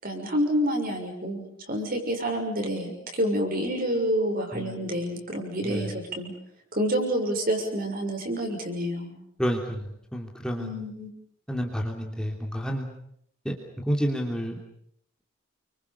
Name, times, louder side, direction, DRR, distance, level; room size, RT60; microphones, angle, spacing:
voice 1, 0.0-6.3 6.7-9.2 10.6-11.1, equal, 45° right, 3 dB, 6.7 m, -28 dB
voice 2, 4.5-5.0 5.6-5.9 9.4-10.8 11.5-12.9 13.4-13.5 13.9-14.6, equal, 5° left, 0 dB, 3.0 m, -30 dB
29.5 x 25.0 x 7.0 m, 0.70 s
head